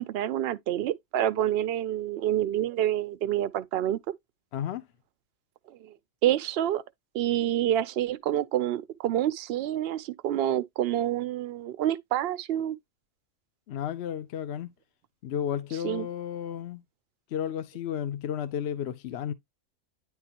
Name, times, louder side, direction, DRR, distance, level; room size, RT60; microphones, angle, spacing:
voice 1, 0.0-4.0 5.7-5.9 6.2-6.8 7.1-12.8 15.8-16.1, right 12 dB, 65° right, 0.6 m, -27 dB
voice 2, 4.5-4.9 13.7-14.7 15.2-16.8 17.3-19.3, left 9 dB, 60° left, 0.8 m, -33 dB
9.6 x 3.7 x 2.8 m
omnidirectional pair, 1.5 m